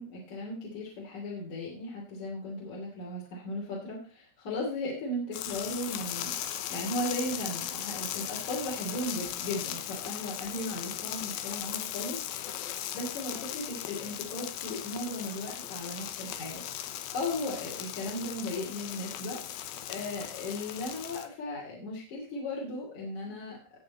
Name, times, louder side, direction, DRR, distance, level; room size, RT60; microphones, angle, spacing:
voice 1, 0.0-12.5 12.9-16.6 17.1-19.4 19.9-23.6, left 1 dB, 45° left, -4 dB, 3.7 m, -36 dB
sound 1, 5.3-21.3, left 11 dB, 80° left, 2.2 m, -38 dB
18.5 x 7.1 x 4.2 m, 0.40 s
omnidirectional pair, 5.5 m